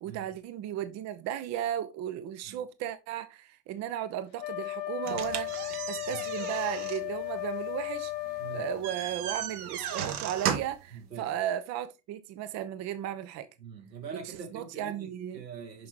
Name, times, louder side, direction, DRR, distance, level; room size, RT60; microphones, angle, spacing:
voice 1, 0.0-8.1 8.5-13.5 14.2-15.4, right 11 dB, 35° right, 0.7 m, -35 dB
Wind instrument woodwind instrument, 4.4-8.8, left 18 dB, 75° left, 0.8 m, -35 dB
sound 1, 5.0-10.9, right 9 dB, 65° right, 1.3 m, -36 dB
voice 2, 10.9-11.3 13.6-15.9, right 6 dB, 80° right, 1.8 m, -44 dB
6.2 x 5.8 x 3.1 m
figure-of-eight pair, 70°, 49 cm